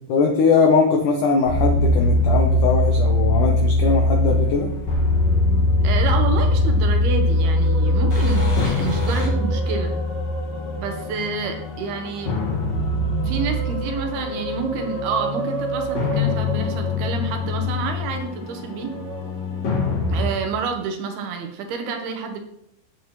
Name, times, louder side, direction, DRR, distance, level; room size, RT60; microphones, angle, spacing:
voice 1, 0.1-4.7, left 4 dB, 75° left, 1 dB, 1.9 m, -20 dB
sound 1, 1.5-20.3, left 2 dB, 45° left, 2.6 m, -22 dB
voice 2, 5.8-9.9 10.8-12.4 13.2-18.9 20.1-22.4, right 5 dB, 70° right, 4 dB, 2.9 m, -28 dB
Musical instrument, 6.9-11.5 12.8-17.7 18.8-19.2, right 2 dB, 35° right, 1.9 m, -33 dB
9.7 x 8.8 x 3.2 m, 0.76 s
omnidirectional pair, 5.1 m